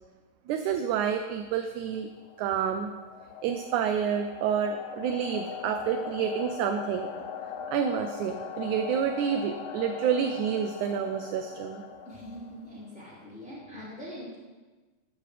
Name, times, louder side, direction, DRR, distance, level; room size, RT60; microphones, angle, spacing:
voice 1, 0.5-2.1 2.4-2.9 3.4-7.1 7.7-11.8, right 8 dB, 75° right, 7 dB, 2.0 m, -29 dB
sound 1, 1.9-12.8, left 7 dB, 75° left, 2.0 m, -40 dB
voice 2, 12.1-14.4, equal, 25° left, -7 dB, 2.5 m, -43 dB
14.0 x 13.0 x 3.4 m, 1.3 s
omnidirectional pair, 3.7 m